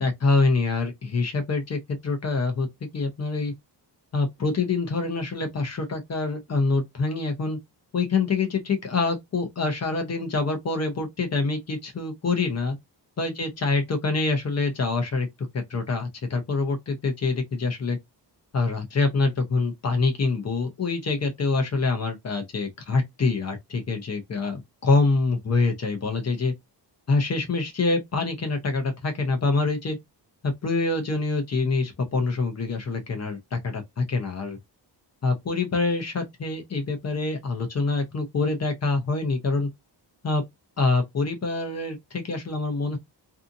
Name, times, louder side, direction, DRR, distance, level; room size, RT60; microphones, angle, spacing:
voice 1, 0.0-2.7 2.9-3.5 4.1-7.6 7.9-12.8 13.2-15.3 15.5-18.0 18.5-26.5 27.1-30.0 30.4-34.6 35.2-39.7 40.2-40.4 40.8-43.0, left 3 dB, 35° left, 0.6 m, -25 dB
2.7 x 2.4 x 2.5 m
wide cardioid pair, 160°, 43 cm